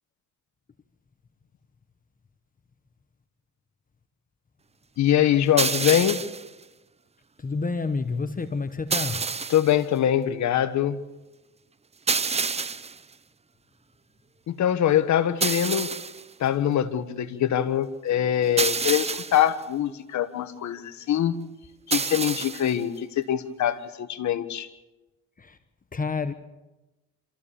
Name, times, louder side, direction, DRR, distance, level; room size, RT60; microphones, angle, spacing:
voice 1, 5.0-6.2 9.5-11.0 14.5-15.9 16.4-21.3 21.9-24.7, left 10 dB, 70° left, 11 dB, 1.5 m, -23 dB
sound 1, 5.6-6.5 8.9-9.7 12.1-13.0 15.4-16.2 18.6-19.5 21.9-22.7, right 5 dB, 20° right, 0.6 m, -27 dB
voice 2, 7.4-9.2 25.4-25.6 25.9-26.3, left 4 dB, 30° left, 9 dB, 1.2 m, -29 dB
26.5 x 14.5 x 7.1 m, 1.1 s
cardioid pair, 90°, 30 cm